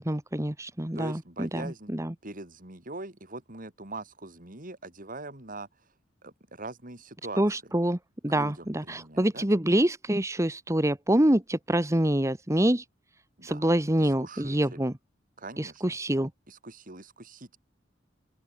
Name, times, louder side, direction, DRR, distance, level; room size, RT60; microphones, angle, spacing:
voice 1, 0.0-2.1 7.4-12.8 13.4-14.9 15.6-16.3, right 1 dB, 15° right, 1.5 m, -26 dB
voice 2, 0.9-1.9 2.2-5.7 6.2-7.4 8.3-9.5 13.4-14.8 15.4-16.0 16.5-17.6, right 2 dB, 45° right, 4.7 m, -42 dB
open air
head